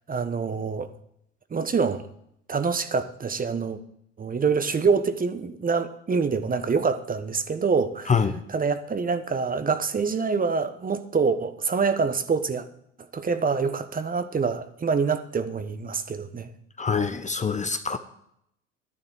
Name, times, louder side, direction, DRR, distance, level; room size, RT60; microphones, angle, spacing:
voice 1, 0.1-0.9 1.5-2.0 2.5-3.8 4.2-8.1 8.5-12.7 13.1-16.5, right 5 dB, 25° right, 11 dB, 1.2 m, -26 dB
voice 2, 8.1-8.4 16.8-18.0, left 5 dB, 20° left, 9 dB, 0.9 m, -25 dB
12.0 x 11.0 x 4.9 m, 0.73 s
hypercardioid pair, 70°, 36 cm